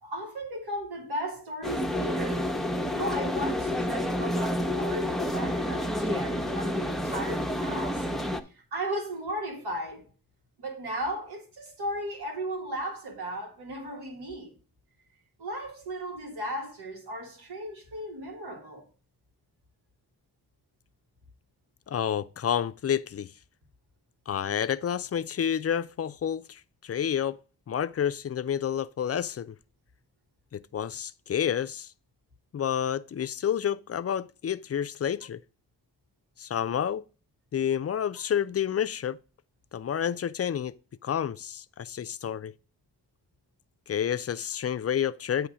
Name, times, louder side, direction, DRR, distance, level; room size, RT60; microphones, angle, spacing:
voice 1, 0.0-2.5 2.9-8.1 8.5-10.1 10.6-14.5 15.4-18.9, right 1 dB, 85° right, 1.9 m, -36 dB
sound 1, 1.6-8.4, left 1 dB, ahead, 0.8 m, -29 dB
voice 2, 21.9-23.3 24.3-27.4 27.7-29.5 30.5-31.9 32.5-35.4 36.4-37.0 37.5-39.2 39.7-40.7 41.0-42.5 43.9-45.5, left 9 dB, 40° left, 0.4 m, -29 dB
8.4 x 3.2 x 6.1 m
supercardioid pair, 40°, 38 cm